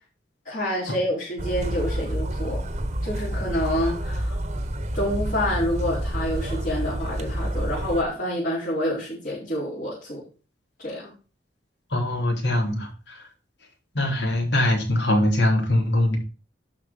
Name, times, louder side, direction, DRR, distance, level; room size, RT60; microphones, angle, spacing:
voice 1, 0.4-2.6 3.0-4.4 4.9-10.2 10.8-11.1, equal, 50° left, -11 dB, 5.0 m, -28 dB
sound 1, 1.4-8.0, right 1 dB, 40° right, 1.0 m, -28 dB
voice 2, 11.9-13.2 13.9-16.2, left 1 dB, 70° left, 1 dB, 3.2 m, -22 dB
12.0 x 4.6 x 5.7 m, 0.35 s
head